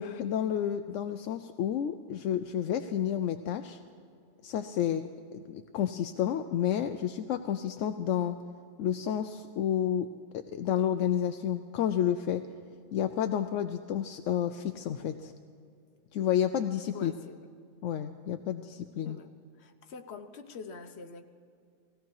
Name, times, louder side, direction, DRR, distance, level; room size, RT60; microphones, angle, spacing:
voice 1, 0.0-3.8 4.4-8.4 8.8-10.1 10.3-12.4 12.9-15.3 16.1-17.1 17.8-19.2, left 9 dB, 80° left, 8 dB, 0.9 m, -30 dB
voice 2, 16.9-17.5 19.0-19.3 19.6-21.2, left 4 dB, 60° left, 6 dB, 1.2 m, -45 dB
18.5 x 16.5 x 4.7 m, 2.4 s
omnidirectional pair, 1.3 m